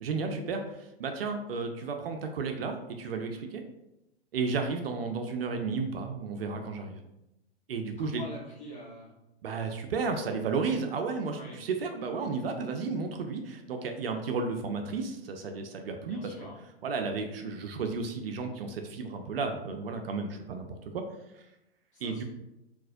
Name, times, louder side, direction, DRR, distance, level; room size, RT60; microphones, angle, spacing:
voice 1, 0.0-3.6 4.3-7.0 7.7-8.2 9.4-16.3 16.8-21.0 22.0-22.2, right 4 dB, 60° right, 5 dB, 0.5 m, -33 dB
voice 2, 8.0-9.1 11.3-11.6 16.0-16.6 21.9-22.2, equal, 20° left, -6 dB, 1.3 m, -44 dB
3.9 x 2.5 x 2.6 m, 0.90 s
figure-of-eight pair, 105°, 32 cm